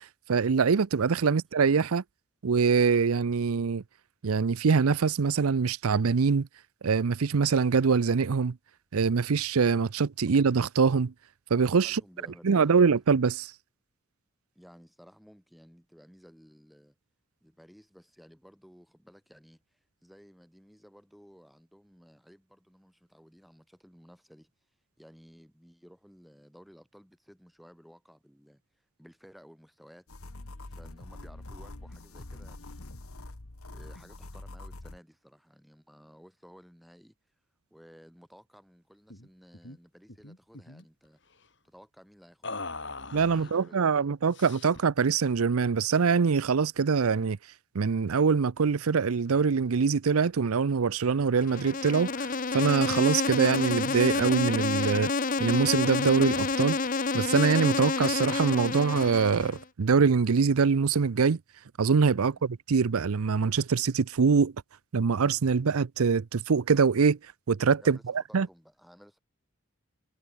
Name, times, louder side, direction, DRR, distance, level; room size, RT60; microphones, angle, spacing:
voice 1, 0.3-2.0 2.4-3.8 4.2-6.5 6.8-8.6 8.9-11.1 11.5-12.0 12.4-13.5 43.1-47.4 47.7-55.1 55.4-56.8 57.1-61.4 61.8-64.5 64.9-67.2 67.5-68.0 68.3-68.5, right 5 dB, 85° right, 0.6 m, -24 dB
voice 2, 11.8-12.8 14.5-17.0 17.4-24.5 25.0-30.1 30.7-32.9 33.7-37.2 37.7-41.2 41.6-42.6 43.2-44.1 62.2-62.5 67.8-68.0 68.3-69.2, equal, ahead, 7.3 m, -56 dB
sound 1, 30.1-35.0, left 2 dB, 90° left, 1.8 m, -44 dB
sound 2, 39.1-39.3 39.5-39.8 40.1-40.8 42.4-43.7 44.3-44.9, left 3 dB, 55° left, 5.9 m, -41 dB
Insect, 51.4-59.6, left 4 dB, 40° left, 0.8 m, -29 dB
head